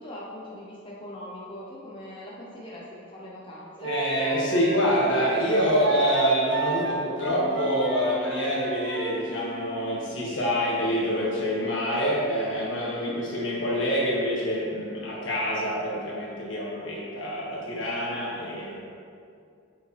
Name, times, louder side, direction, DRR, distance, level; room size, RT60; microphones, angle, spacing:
voice 1, 0.0-3.9 12.8-13.2, left 1 dB, 25° left, -6 dB, 0.8 m, -41 dB
voice 2, 3.8-18.8, equal, 75° left, -5 dB, 1.6 m, -26 dB
Wind instrument woodwind instrument, 3.8-9.3, right 5 dB, 60° right, 0.4 m, -32 dB
sound 1, 7.2-16.7, left 3 dB, 35° right, 1.3 m, -45 dB
7.5 x 5.3 x 3.2 m, 2.4 s
head